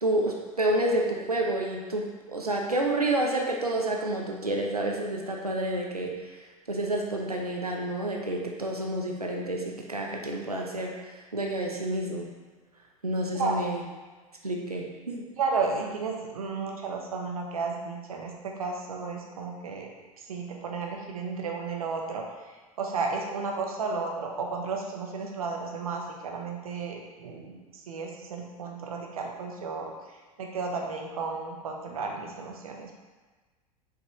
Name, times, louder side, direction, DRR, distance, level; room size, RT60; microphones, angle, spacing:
voice 1, 0.0-6.3 6.7-10.9 11.3-12.3 13.0-13.8 14.4-15.3, right 1 dB, 90° right, 0 dB, 0.8 m, -29 dB
voice 2, 15.4-19.9 20.3-22.2 22.8-29.9 30.4-33.0, right 4 dB, 70° right, 1 dB, 1.1 m, -33 dB
6.3 x 5.3 x 3.1 m, 1.3 s
figure-of-eight pair, 80°, 19 cm